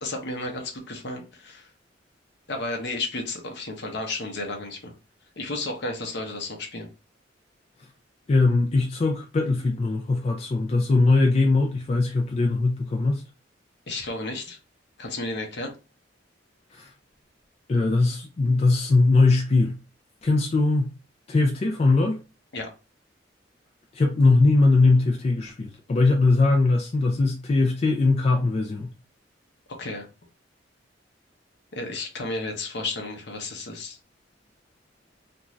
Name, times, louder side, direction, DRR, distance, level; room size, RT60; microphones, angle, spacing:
voice 1, 0.0-1.7 2.5-4.9 5.4-6.9 13.9-14.6 15.0-15.7 22.5-22.7 29.8-30.1 31.7-34.0, left 2 dB, 65° left, 0.8 m, -32 dB
voice 2, 8.3-13.2 16.7-16.9 17.7-19.8 20.2-20.9 21.3-22.2 23.9-28.9, left 3 dB, 35° left, 0.3 m, -21 dB
2.5 x 2.3 x 3.0 m
head